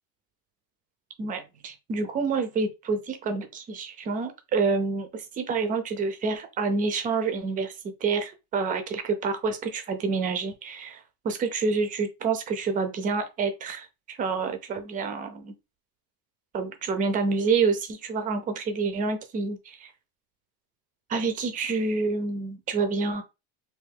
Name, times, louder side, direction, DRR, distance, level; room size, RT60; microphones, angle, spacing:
voice 1, 1.2-7.7 8.0-11.0 11.2-15.5 16.5-19.9 21.1-23.2, right 4 dB, 20° right, 0.4 m, -28 dB
3.3 x 2.7 x 3.3 m
cardioid pair, 175°, 40 cm